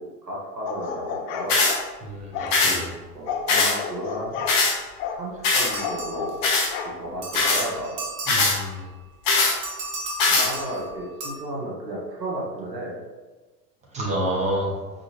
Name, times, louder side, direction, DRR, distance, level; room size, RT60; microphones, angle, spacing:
voice 1, 0.0-1.6 3.1-4.3 5.1-6.4 7.0-8.0 10.3-13.0, equal, 85° right, -4 dB, 1.1 m, -33 dB
sound 1, 0.7-1.8 2.3-2.6 3.3-4.6 5.0-5.2 5.7-6.9 7.4-7.5, left 6 dB, 25° left, 0.4 m, -32 dB
sound 2, 1.5-1.8 2.5-2.8 3.5-3.8 4.5-4.7 5.4-5.7 6.4-6.7 7.3-7.6 8.3-8.6 9.3-9.5 10.2-10.5, left 3 dB, 50° left, 1.1 m, -20 dB
voice 2, 2.0-2.9 8.3-8.8 13.9-14.8, right 1 dB, 15° right, -4 dB, 1.3 m, -28 dB
sound 3, 5.6-6.7 7.2-8.9 9.6-11.3, right 2 dB, 40° right, 1.2 m, -35 dB
4.8 x 4.0 x 2.8 m, 1.3 s
figure-of-eight pair, 85°, 49 cm